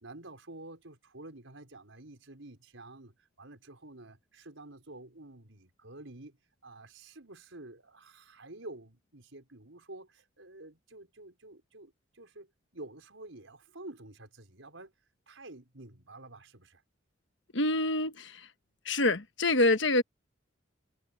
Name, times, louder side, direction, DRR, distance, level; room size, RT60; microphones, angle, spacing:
voice 1, 0.0-6.4 6.6-14.9 15.3-16.8, right 2 dB, 75° right, 5.0 m, -49 dB
voice 2, 17.5-18.5 18.8-20.0, left 2 dB, 65° left, 1.3 m, -26 dB
head